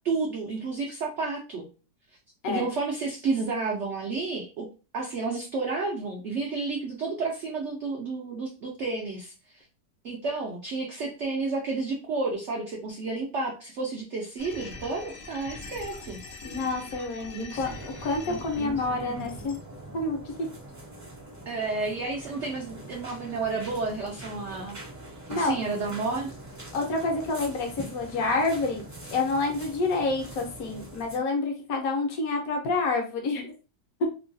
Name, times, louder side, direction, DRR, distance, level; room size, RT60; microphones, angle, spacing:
voice 1, 0.0-1.7 2.5-4.7 4.9-9.6 10.0-16.2 17.3-17.7 18.3-19.3 21.5-24.8 25.3-26.3, right 3 dB, 70° right, -1 dB, 0.7 m, -31 dB
sound 1, 14.4-19.6, left 3 dB, 80° left, 0.5 m, -43 dB
voice 2, 16.4-19.6 19.9-20.2 25.3-25.6 26.7-28.8 29.1-33.5, left 3 dB, 65° left, 3 dB, 1.1 m, -28 dB
sound 2, 17.5-31.2, right 1 dB, 15° right, 0.5 m, -43 dB
3.0 x 2.2 x 2.6 m, 0.33 s
omnidirectional pair, 1.8 m